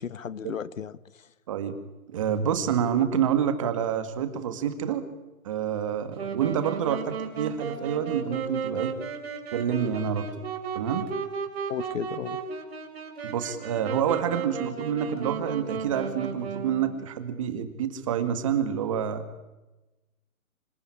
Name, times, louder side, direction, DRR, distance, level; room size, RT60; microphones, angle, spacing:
voice 1, 0.0-1.3 11.7-12.4, left 7 dB, 65° left, 17 dB, 1.4 m, -34 dB
voice 2, 2.1-5.0 5.4-8.9 9.5-10.3 10.8-11.1 13.2-19.2, right 8 dB, 25° right, 9 dB, 2.0 m, -28 dB
Wind instrument woodwind instrument, 6.1-17.1, right 6 dB, 45° right, 4.8 m, -34 dB
27.0 x 21.0 x 10.0 m, 1.1 s
hypercardioid pair, 175°, 42 cm